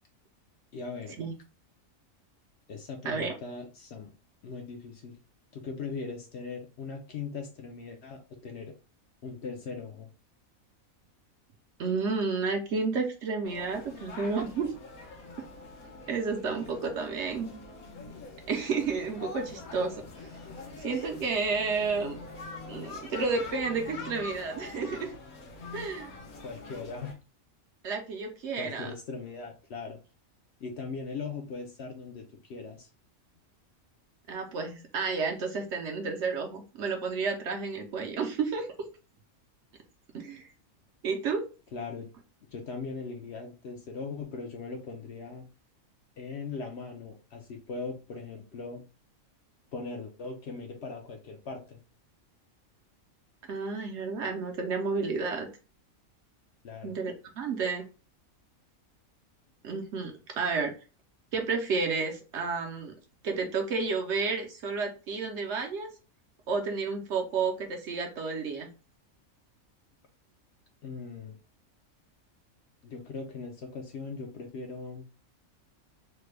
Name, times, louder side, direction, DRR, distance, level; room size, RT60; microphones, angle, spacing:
voice 1, 0.7-1.2 2.7-4.1 4.4-5.2 5.5-8.7 9.2-10.1 26.4-27.1 28.5-30.0 30.6-32.9 41.7-42.1 42.5-45.5 46.2-48.8 49.7-51.8 56.6-57.0 70.8-71.4 72.8-75.0, left 4 dB, 65° left, 3 dB, 0.7 m, -39 dB
voice 2, 11.8-14.7 16.1-17.6 18.5-20.0 20.8-22.2 22.7-25.1 25.7-26.1 27.8-28.9 34.3-38.7 40.1-40.5 41.0-41.4 53.5-55.5 56.8-57.8 59.6-60.7 61.3-62.9 63.2-65.9 66.5-68.7, right 4 dB, 65° right, 3 dB, 0.8 m, -31 dB
sound 1, 13.4-27.1, left 3 dB, 85° left, 1.3 m, -44 dB
3.2 x 2.1 x 3.2 m, 0.33 s
omnidirectional pair, 1.5 m